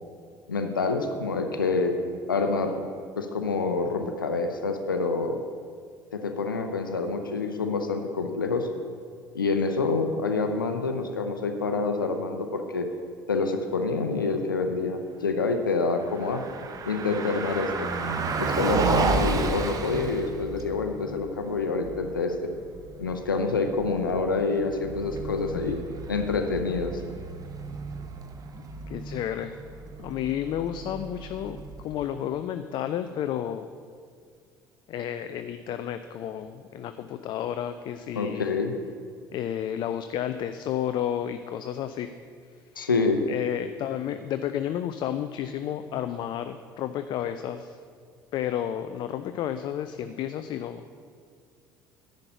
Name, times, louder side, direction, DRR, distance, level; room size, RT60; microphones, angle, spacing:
voice 1, 0.5-1.9 2.3-2.9 3.2-5.4 6.1-8.7 9.3-12.9 13.3-16.4 16.8-17.9 18.4-22.5 23.0-25.8 26.1-27.0 38.1-38.7 42.8-43.2, left 4 dB, 80° left, 6 dB, 0.7 m, -27 dB
Car passing by, 15.9-32.0, right 4 dB, 35° right, 0.9 m, -33 dB
voice 2, 28.9-29.5 30.0-31.6 31.8-33.7 34.9-38.5 39.3-42.1 43.3-47.8 48.3-50.8, left 10 dB, 45° left, 10 dB, 0.4 m, -31 dB
10.5 x 5.3 x 8.4 m, 2.1 s
figure-of-eight pair, 60°, 11 cm